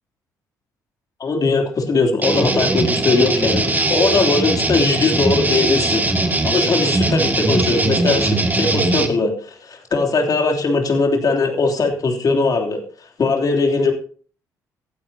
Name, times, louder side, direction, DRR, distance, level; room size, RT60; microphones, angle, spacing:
voice 1, 1.2-6.0 6.4-12.8 13.2-13.9, left 3 dB, 45° left, 3 dB, 3.2 m, -19 dB
sound 1, 2.2-9.1, right 2 dB, 20° right, 2.2 m, -20 dB
15.5 x 14.0 x 2.8 m, 0.43 s
hypercardioid pair, 45°, 9 cm